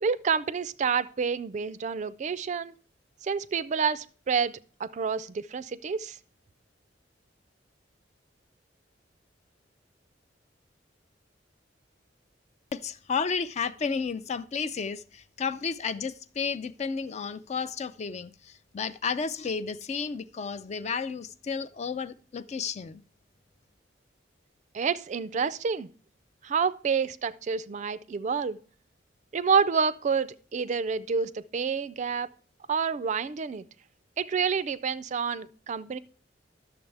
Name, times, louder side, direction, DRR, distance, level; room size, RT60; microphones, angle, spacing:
voice 1, 0.0-2.7 3.2-6.2 24.7-25.9 26.4-28.6 29.3-32.3 32.7-33.6 34.2-36.0, right 6 dB, 40° right, 0.3 m, -28 dB
voice 2, 12.7-23.0, left 5 dB, 40° left, 0.4 m, -32 dB
11.0 x 7.0 x 3.3 m
head